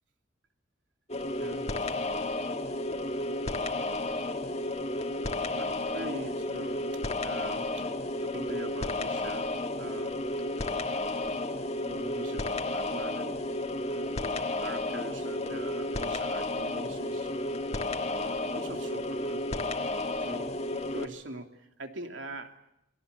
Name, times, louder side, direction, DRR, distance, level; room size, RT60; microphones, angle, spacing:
sound 1, 1.1-21.1, left 2 dB, 35° left, 1.8 m, -32 dB
voice 1, 1.4-2.0 5.5-7.9 8.2-10.3 11.7-17.4 18.1-19.4 20.2-22.7, right 2 dB, 80° right, 5 dB, 3.0 m, -44 dB
28.5 x 23.0 x 7.0 m, 0.82 s
head